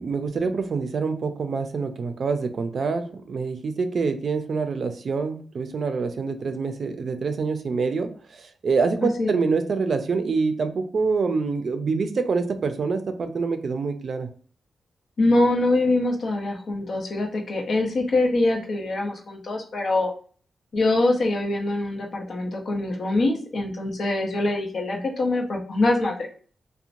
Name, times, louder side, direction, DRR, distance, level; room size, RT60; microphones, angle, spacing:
voice 1, 0.0-14.3, right 4 dB, 60° right, 7 dB, 0.4 m, -26 dB
voice 2, 15.2-20.1 20.7-26.3, left 2 dB, 60° left, 1 dB, 0.7 m, -24 dB
2.9 x 2.1 x 2.5 m, 0.42 s
cardioid pair, 65°, 0 cm